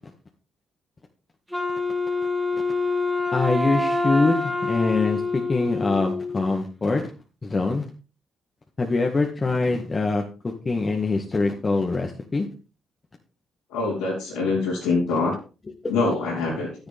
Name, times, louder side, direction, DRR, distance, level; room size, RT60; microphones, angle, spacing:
Wind instrument woodwind instrument, 1.5-6.5, left 3 dB, 5° right, 3.1 m, -26 dB
voice 1, 3.3-7.1 7.4-7.9 8.8-12.5 15.8-15.9, left 3 dB, 35° left, 2 dB, 1.9 m, -24 dB
voice 2, 13.7-15.3 15.9-16.7, left 3 dB, 85° left, -7 dB, 3.8 m, -24 dB
11.0 x 10.5 x 3.6 m, 0.33 s
hypercardioid pair, 45°, 0 cm